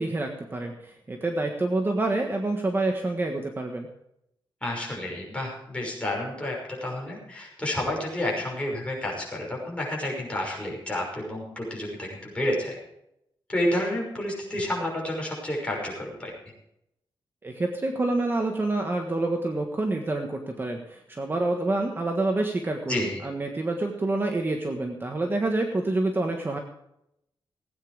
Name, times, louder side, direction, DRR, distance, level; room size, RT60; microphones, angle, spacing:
voice 1, 0.0-3.9 17.4-26.6, right 2 dB, 25° right, 3 dB, 1.5 m, -27 dB
voice 2, 4.6-12.8 13.5-16.3 22.9-23.3, left 1 dB, 15° left, -2 dB, 5.8 m, -30 dB
17.5 x 9.4 x 4.9 m, 0.80 s
wide cardioid pair, 135°, 9 cm